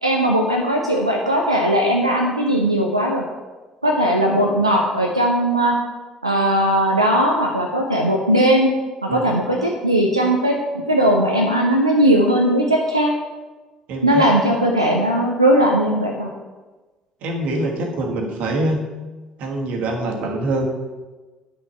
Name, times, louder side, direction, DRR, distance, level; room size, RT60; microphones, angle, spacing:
voice 1, 0.0-3.2 3.8-5.8 6.2-8.7 9.0-10.6 10.9-13.1 14.0-16.3, equal, 90° right, 0 dB, 0.5 m, -18 dB
voice 2, 13.9-14.2 17.2-18.8 19.4-20.7, right 1 dB, 55° right, 2 dB, 1.4 m, -24 dB
9.7 x 6.3 x 4.2 m, 1.2 s
figure-of-eight pair, 50°, 3 cm